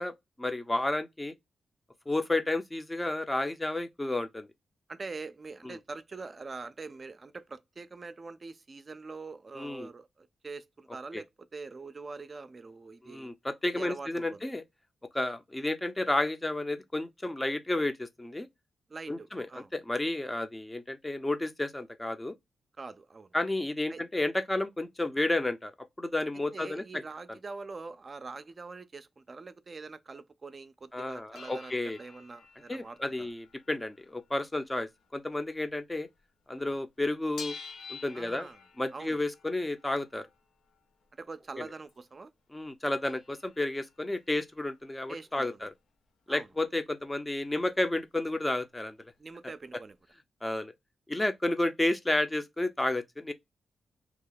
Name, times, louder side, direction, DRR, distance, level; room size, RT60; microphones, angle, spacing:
voice 1, 0.0-1.3 2.1-4.5 5.6-5.8 9.5-9.9 11.1-11.2 13.0-14.6 15.1-18.5 19.1-22.3 23.3-26.8 30.9-32.0 32.7-36.1 36.5-37.6 37.9-38.5 38.8-40.3 42.5-45.7 46.3-49.0 50.4-50.7 51.1-53.3, left 2 dB, 20° left, 0.6 m, -31 dB
voice 2, 4.9-13.3 13.7-14.4 18.9-19.7 22.8-23.3 23.9-24.0 26.5-33.3 36.6-36.8 38.1-38.6 38.9-39.2 41.1-42.3 45.1-45.7 46.3-46.5 49.2-50.0, right 4 dB, 45° right, 0.4 m, -44 dB
sound 1, 31.3-36.3 36.6-42.1 42.6-42.7 42.8-46.8 47.1-48.0 48.3-48.4 48.6-49.7 50.1-50.2, left 5 dB, 80° left, 0.7 m, -51 dB
2.9 x 2.1 x 3.9 m
supercardioid pair, 45°, 0 cm